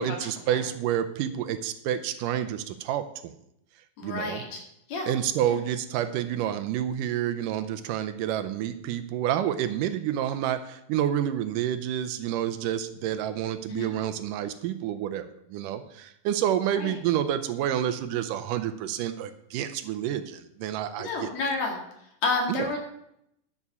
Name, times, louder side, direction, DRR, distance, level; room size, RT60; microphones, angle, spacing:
voice 1, 0.0-3.3 4.0-4.4 5.1-21.3 22.5-22.7, right 10 dB, 80° right, 9 dB, 2.2 m, -29 dB
voice 2, 4.0-4.6 4.9-5.1 5.4-5.6 13.7-13.9 16.7-17.0 21.0-21.8 22.2-22.8, left 3 dB, 55° left, 1 dB, 3.1 m, -30 dB
11.0 x 7.1 x 7.0 m, 0.78 s
omnidirectional pair, 3.9 m